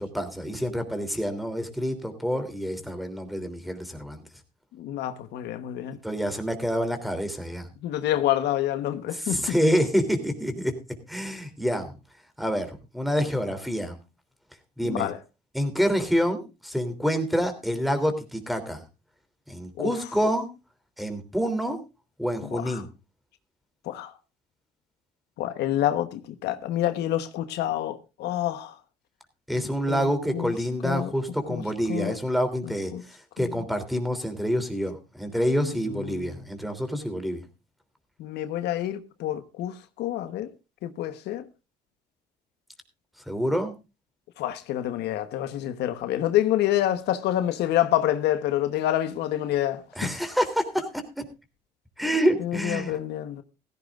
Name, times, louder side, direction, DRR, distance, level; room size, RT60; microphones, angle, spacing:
voice 1, 0.0-4.2 6.0-7.7 9.1-10.7 11.1-11.9 12.4-12.7 12.9-13.9 14.8-15.1 15.5-18.8 19.5-20.5 21.0-21.8 22.2-22.9 29.5-37.4 43.3-43.7 50.0-51.2 52.0-53.0, equal, ahead, 3.1 m, -27 dB
voice 2, 4.8-6.0 7.8-9.4 14.8-15.2 19.8-19.9 22.4-22.8 23.9-24.1 25.4-28.8 29.9-30.5 30.8-31.1 31.5-31.6 31.9-32.2 32.9-33.0 35.6-35.7 36.1-36.4 38.2-40.5 40.8-41.5 44.4-49.8 52.4-53.4, left 12 dB, 80° left, 1.2 m, -27 dB
16.5 x 15.5 x 2.5 m
cardioid pair, 110°, 17 cm